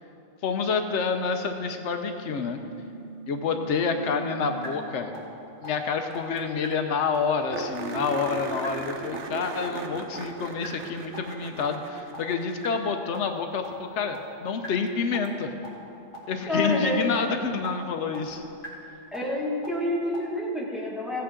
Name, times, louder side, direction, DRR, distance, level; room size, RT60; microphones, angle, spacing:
voice 1, 0.4-2.6 3.3-5.1 5.6-15.5 16.3-18.4, left 5 dB, 85° left, 6 dB, 1.0 m, -28 dB
sound 1, 2.2-4.7 5.1-5.2 5.6-5.7 6.1-6.2 6.6-6.7 7.1-7.2 7.6-7.7 8.1-8.2 8.6-8.7 9.1-9.2 9.6-9.7 10.1-10.2 10.6-10.7 11.1-11.2 11.6-11.7 12.1-12.2 12.6-12.7 13.1-13.2 13.6-13.7 14.1-14.2 14.6-14.7 15.1-15.2 15.6-15.7 16.1-16.2 16.6-16.7 17.1-17.2 17.6-17.7 18.1-18.2 18.6-18.7 19.1-19.2 19.6-19.7 20.1-20.2, right 2 dB, 50° left, 2.1 m, -40 dB
sound 2, 6.1-6.2 6.4-6.5 6.8-6.9 7.5-12.9 15.3-15.4 18.2-18.3, right 5 dB, 85° right, 1.1 m, -37 dB
voice 2, 16.5-17.0 19.1-21.2, left 1 dB, ahead, -4 dB, 1.7 m, -28 dB
15.5 x 8.6 x 3.7 m, 2.7 s
omnidirectional pair, 1.2 m